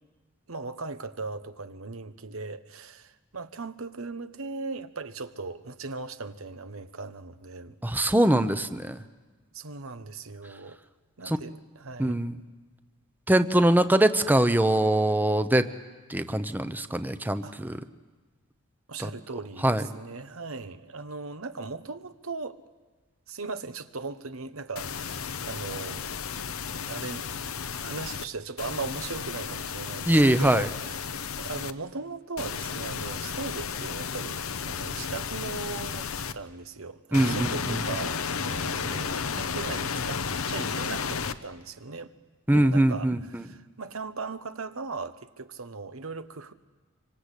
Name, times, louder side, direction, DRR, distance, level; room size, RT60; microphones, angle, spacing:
voice 1, 0.5-7.7 9.5-10.8 11.2-12.2 17.4-17.6 18.9-19.7 19.9-22.6 23.3-26.1 26.7-27.5 27.8-42.1 42.5-46.5, right 4 dB, 75° right, 11 dB, 1.2 m, -38 dB
voice 2, 7.8-9.0 11.3-11.4 12.0-12.4 13.3-15.7 16.1-17.8 19.0-19.1 19.6-19.8 30.1-30.7 37.1-37.8 42.5-43.4, right 1 dB, 10° right, 11 dB, 0.8 m, -23 dB
sound 1, 24.8-28.2 28.6-31.7 32.4-36.3 37.1-41.4, left 6 dB, 85° left, 0.9 m, -33 dB
26.5 x 24.5 x 8.4 m, 1.3 s
head